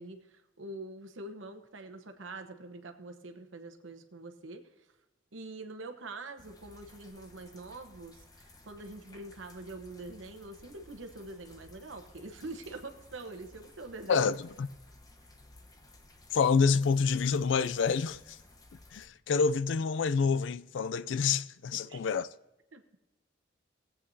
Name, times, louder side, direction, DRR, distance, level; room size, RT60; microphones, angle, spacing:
voice 1, 0.0-4.9 5.3-14.3 21.7-22.0 22.7-23.0, right 2 dB, 80° right, 1.1 m, -45 dB
sound 1, 6.4-19.1, left 2 dB, 20° left, 1.0 m, -57 dB
voice 2, 14.1-14.7 16.3-18.4 18.9-22.3, left 5 dB, 70° left, 0.4 m, -27 dB
18.0 x 8.5 x 2.7 m
head